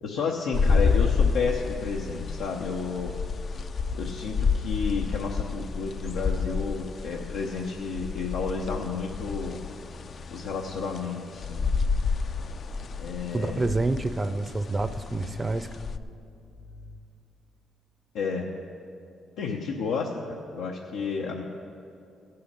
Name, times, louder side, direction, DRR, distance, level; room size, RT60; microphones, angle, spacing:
voice 1, 0.0-3.1 3.9-9.6 10.3-11.7 13.0-13.7 18.1-18.5 19.4-21.4, left 5 dB, 90° left, -1 dB, 0.8 m, -31 dB
sound 1, 0.5-16.0, left 5 dB, 50° left, 0.4 m, -29 dB
sound 2, 7.9-17.0, left 4 dB, 75° left, 3.1 m, -47 dB
voice 2, 13.3-15.7, right 2 dB, 25° right, 12 dB, 0.5 m, -28 dB
16.5 x 5.7 x 6.6 m, 2.5 s
cardioid pair, 90°, 0 cm